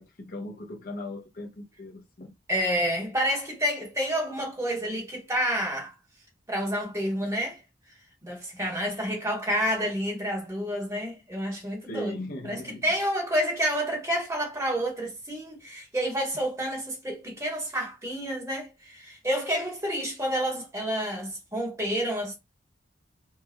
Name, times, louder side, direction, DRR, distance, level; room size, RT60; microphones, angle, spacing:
voice 1, 0.0-2.3 11.9-12.8, left 1 dB, 50° left, 0.7 m, -38 dB
voice 2, 2.5-5.9 6.5-7.6 8.2-12.1 12.4-22.3, equal, 15° right, 1.2 m, -29 dB
4.6 x 2.3 x 2.2 m
head